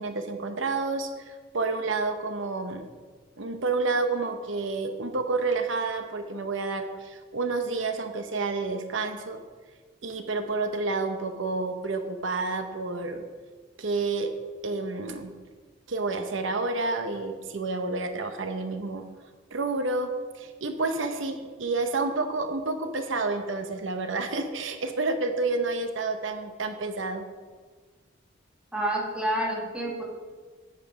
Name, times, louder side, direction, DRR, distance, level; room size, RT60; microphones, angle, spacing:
voice 1, 0.0-2.9 3.4-9.4 10.0-13.2 13.8-14.3 14.6-15.3 15.9-19.0 19.5-27.2, right 3 dB, 85° right, 7 dB, 0.9 m, -29 dB
voice 2, 28.7-30.0, right 1 dB, 5° right, -2 dB, 1.8 m, -28 dB
9.3 x 8.3 x 5.1 m, 1.4 s
head